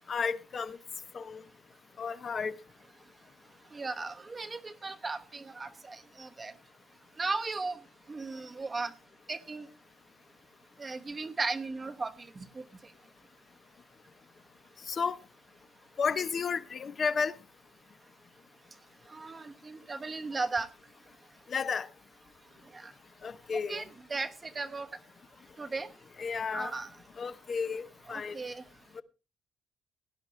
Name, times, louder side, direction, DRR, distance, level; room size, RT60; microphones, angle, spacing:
voice 1, 0.1-0.8 1.1-1.4 2.0-2.6 14.9-15.2 16.0-17.3 21.5-21.9 23.2-23.9 26.2-26.7 27.2-28.4 28.9-29.0, left 5 dB, 45° left, 0.8 m, -32 dB
voice 2, 3.7-6.5 7.2-7.8 8.1-8.9 9.3-9.7 10.8-12.3 12.5-12.6 19.1-20.7 22.7-22.9 23.7-24.9 25.6-25.9 26.5-26.9 28.1-28.6, right 3 dB, 30° right, 1.0 m, -36 dB
17.5 x 10.5 x 3.2 m
cardioid pair, 90°, 0 cm